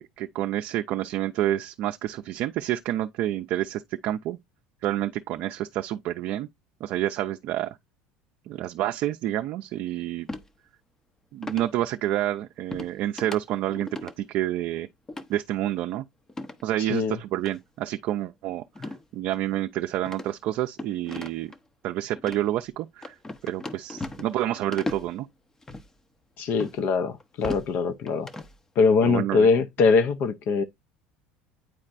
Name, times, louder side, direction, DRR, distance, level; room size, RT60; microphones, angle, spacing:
voice 1, 0.0-4.4 4.8-6.5 6.8-7.8 8.5-10.3 11.3-14.9 15.3-16.0 16.6-18.6 19.1-21.5 21.8-23.1 23.4-25.3 29.0-29.5, right 13 dB, 55° right, 0.5 m, -28 dB
sound 1, 10.3-10.5 11.4-11.7 12.7-12.9 13.2-13.4 13.7-14.1 15.1-15.3 16.3-16.6 17.4-17.5 18.8-19.0 19.3-19.4 20.0-21.6 22.2-22.4 23.0-24.4 24.7-25.1 25.6-25.9 26.6-26.8 27.2-27.7 28.1-28.5, left 2 dB, 15° left, 0.7 m, -36 dB
voice 2, 26.4-28.3 28.8-30.6, left 4 dB, 50° left, 0.6 m, -22 dB
9.0 x 4.4 x 2.5 m
supercardioid pair, 130°, 4 cm